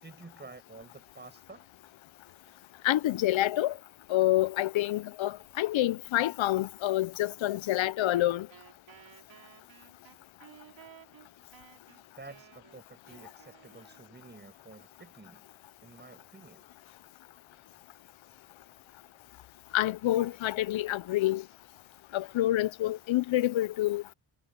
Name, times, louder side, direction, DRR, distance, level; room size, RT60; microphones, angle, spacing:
voice 1, 0.0-1.7 12.2-15.4 15.8-16.7, right 3 dB, 20° right, 5.5 m, -50 dB
voice 2, 2.8-3.7 4.1-8.5 19.7-21.4 22.1-24.0, left 15 dB, 70° left, 0.6 m, -27 dB
Wind instrument woodwind instrument, 8.1-14.4, right 8 dB, 60° right, 3.6 m, -56 dB
wide cardioid pair, 160°, 50 cm